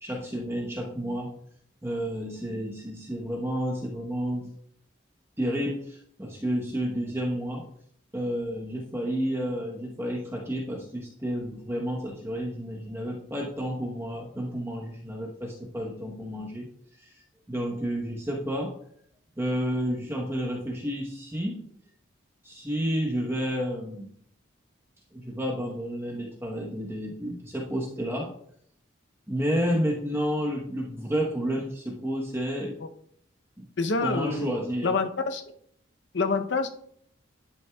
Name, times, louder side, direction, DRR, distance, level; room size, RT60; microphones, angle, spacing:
voice 1, 0.0-1.4 1.8-4.5 5.4-7.7 8.1-16.7 17.0-17.1 17.5-18.8 19.4-21.7 22.4-24.1 25.1-28.4 29.3-32.8 33.6-33.7 34.0-34.9, equal, 10° right, -2 dB, 1.0 m, -31 dB
voice 2, 33.8-34.5 34.8-35.4 36.1-36.8, left 4 dB, 60° left, 7 dB, 0.7 m, -26 dB
11.0 x 6.3 x 2.3 m, 0.67 s
head